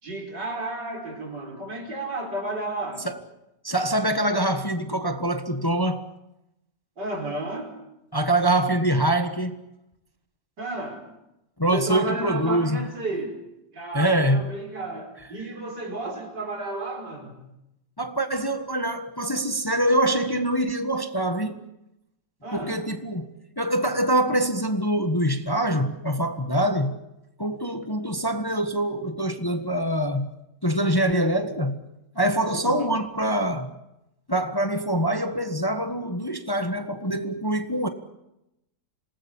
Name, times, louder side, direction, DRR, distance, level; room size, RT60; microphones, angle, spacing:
voice 1, 0.0-3.1 7.0-7.8 10.6-11.0 11.7-13.4 13.7-17.4 22.4-22.8 23.9-24.0 32.5-32.9, right 2 dB, 90° right, 3 dB, 5.5 m, -32 dB
voice 2, 3.6-6.1 8.1-9.6 11.6-12.9 13.9-14.5 18.0-21.6 22.5-27.0 27.4-30.3 30.6-31.9 32.1-33.7 34.3-37.9, right 1 dB, 15° left, 7 dB, 1.3 m, -24 dB
27.0 x 19.0 x 8.8 m, 0.89 s
omnidirectional pair, 1.8 m